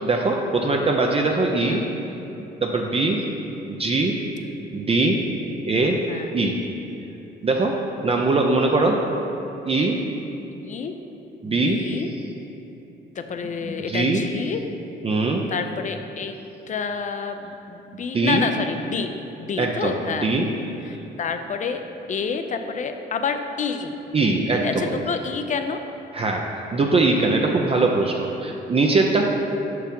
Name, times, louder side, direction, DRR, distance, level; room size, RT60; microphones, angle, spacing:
voice 1, 0.0-1.8 2.6-3.2 3.7-4.2 4.7-5.2 5.7-6.0 6.3-6.6 7.4-9.0 9.7-10.0 11.4-11.8 13.6-14.2 15.0-15.4 17.9-18.5 19.6-20.5 24.1-24.9 26.1-29.2, right 3 dB, 30° right, 1 dB, 0.5 m, -21 dB
voice 2, 3.0-3.4 6.1-6.4 7.5-7.6 10.5-10.9 11.4-12.1 13.2-14.7 15.5-16.4 16.7-20.3 20.8-21.8 22.1-24.0 24.5-25.8, left 5 dB, 40° left, 7 dB, 0.5 m, -29 dB
6.0 x 4.7 x 5.2 m, 3.0 s
cardioid pair, 90°, 20 cm